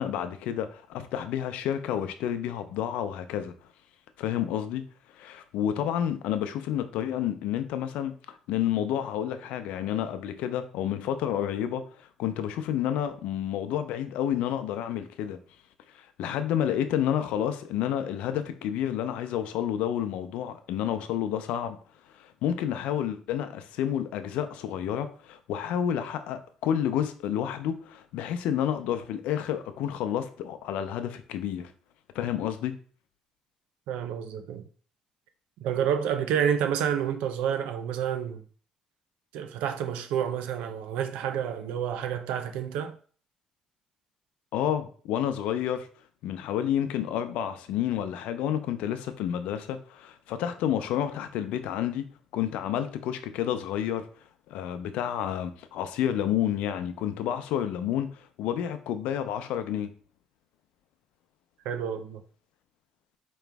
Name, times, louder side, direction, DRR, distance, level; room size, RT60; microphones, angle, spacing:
voice 1, 0.0-3.5 4.2-4.8 5.2-8.1 8.5-15.4 15.9-21.8 22.2-31.7 32.1-32.7 44.5-45.9 46.2-52.1 52.3-54.1 54.5-59.9, left 10 dB, 85° left, 0.5 m, -30 dB
voice 2, 33.9-34.6 35.6-38.4 39.3-43.0 61.6-62.2, right 8 dB, 90° right, 0.6 m, -29 dB
4.9 x 3.1 x 3.4 m
cardioid pair, 100°, 2 cm